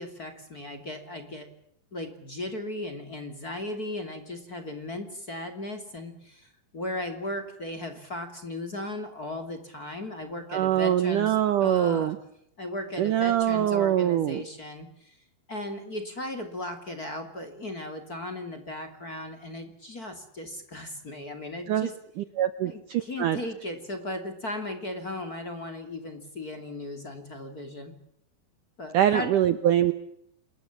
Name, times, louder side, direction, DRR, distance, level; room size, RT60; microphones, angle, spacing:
voice 1, 0.0-1.5 1.9-11.3 11.6-12.1 12.6-15.2 15.5-21.9 22.6-27.9 28.8-29.3, left 1 dB, 25° left, 7 dB, 2.6 m, -36 dB
voice 2, 10.5-12.2 13.0-14.4 21.7-21.9 22.2-23.4 28.9-29.9, right 11 dB, 70° right, 12 dB, 2.1 m, -24 dB
28.0 x 21.0 x 7.3 m, 0.73 s
omnidirectional pair, 4.8 m